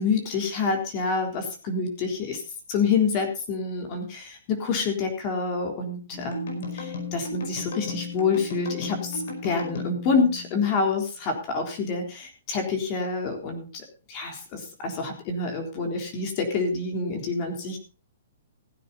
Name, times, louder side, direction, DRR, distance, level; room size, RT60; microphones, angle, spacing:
voice 1, 0.0-2.4 2.7-17.8, left 4 dB, 30° left, 4 dB, 3.6 m, -27 dB
sound 1, 6.1-11.0, left 3 dB, 65° left, 5.3 m, -35 dB
15.5 x 9.6 x 4.1 m, 0.35 s
hypercardioid pair, 160°, 0 cm